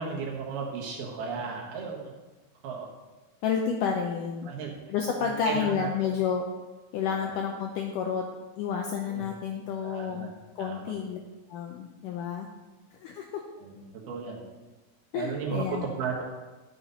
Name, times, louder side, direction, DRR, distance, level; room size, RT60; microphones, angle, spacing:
voice 1, 0.0-2.0 2.6-2.9 4.4-4.7 5.2-6.1 7.1-7.4 9.1-9.3 9.8-10.3 10.6-11.0 12.1-12.2 13.6-14.4 15.1-16.2, right 5 dB, 80° right, -1 dB, 3.4 m, -35 dB
voice 2, 3.4-4.5 4.9-6.5 6.9-8.2 8.6-10.3 10.6-11.2 11.5-12.5 13.0-13.2 15.1-15.9, left 7 dB, 85° left, 2 dB, 1.9 m, -30 dB
11.5 x 7.4 x 4.1 m, 1.2 s
omnidirectional pair, 4.5 m